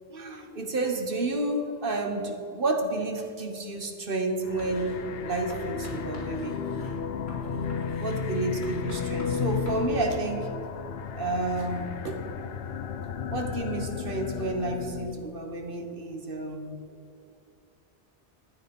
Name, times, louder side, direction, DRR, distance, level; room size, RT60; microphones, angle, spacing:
voice 1, 0.1-6.6 8.0-10.5 11.1-12.2 13.3-16.8, right 2 dB, 60° right, 4 dB, 1.5 m, -30 dB
sound 1, 4.4-15.2, left 6 dB, 70° left, 0.9 m, -33 dB
Writing, 4.6-5.0 5.5-9.9, equal, 90° left, 3.6 m, -44 dB
13.5 x 9.6 x 5.4 m, 2.5 s
omnidirectional pair, 1.1 m